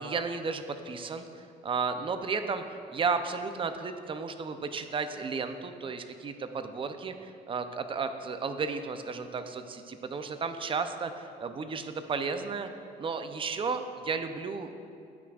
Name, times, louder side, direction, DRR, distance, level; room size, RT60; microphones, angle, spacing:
voice 1, 0.0-12.7 13.0-14.8, right 5 dB, 30° right, 8 dB, 0.5 m, -33 dB
16.0 x 5.9 x 2.4 m, 2.6 s
cardioid pair, 110°, 17 cm